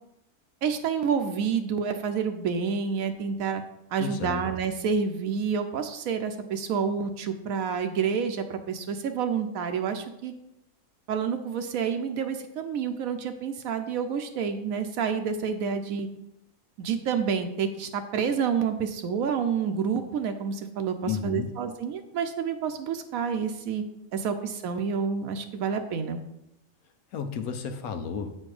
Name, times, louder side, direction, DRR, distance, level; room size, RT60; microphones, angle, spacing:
voice 1, 0.6-3.6 3.9-10.3 11.1-16.1 16.8-23.8 24.1-26.2, right 6 dB, 75° right, 7 dB, 1.0 m, -28 dB
voice 2, 4.0-4.4 21.1-21.5 27.1-28.4, left 6 dB, 85° left, 8 dB, 1.2 m, -32 dB
8.0 x 4.3 x 4.8 m, 0.85 s
omnidirectional pair, 1.5 m